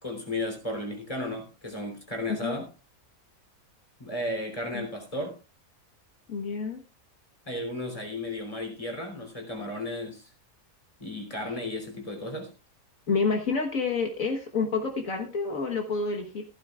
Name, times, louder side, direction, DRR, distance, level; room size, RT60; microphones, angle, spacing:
voice 1, 0.0-2.7 4.0-5.4 7.5-10.3 11.0-12.5, left 1 dB, 25° left, 3 dB, 3.5 m, -34 dB
voice 2, 2.3-2.6 4.7-4.9 6.3-6.8 11.5-11.6 13.1-16.4, left 4 dB, 65° left, 3 dB, 1.8 m, -29 dB
15.0 x 13.5 x 2.4 m, 0.31 s
omnidirectional pair, 1.5 m